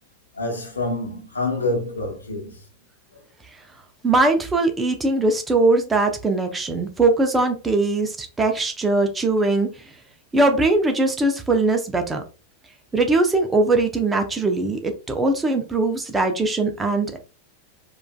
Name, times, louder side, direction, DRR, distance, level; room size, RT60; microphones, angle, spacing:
voice 1, 0.3-2.6, left 2 dB, 75° left, 1.0 m, -27 dB
voice 2, 4.0-9.9 10.3-12.2 12.9-17.2, right 2 dB, 15° right, 0.6 m, -21 dB
4.7 x 2.5 x 2.2 m
figure-of-eight pair, 90°, 0 cm